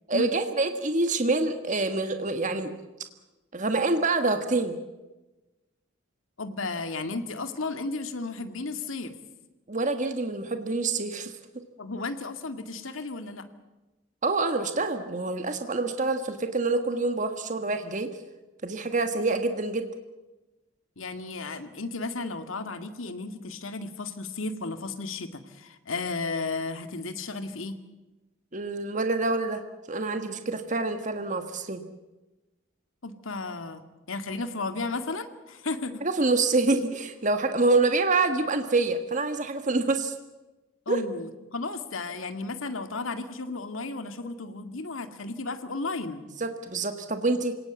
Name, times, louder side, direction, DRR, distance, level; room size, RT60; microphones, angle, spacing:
voice 1, 0.1-2.7 3.5-4.8 9.7-11.3 14.2-18.1 18.6-19.9 28.5-29.6 29.9-31.8 36.0-40.1 40.9-41.0 46.4-47.5, right 3 dB, 40° right, 7 dB, 1.5 m, -26 dB
voice 2, 6.4-9.1 11.8-13.5 21.0-27.8 33.0-36.0 40.9-46.2, left 3 dB, 85° left, 8 dB, 2.1 m, -34 dB
27.5 x 18.0 x 8.2 m, 1.1 s
head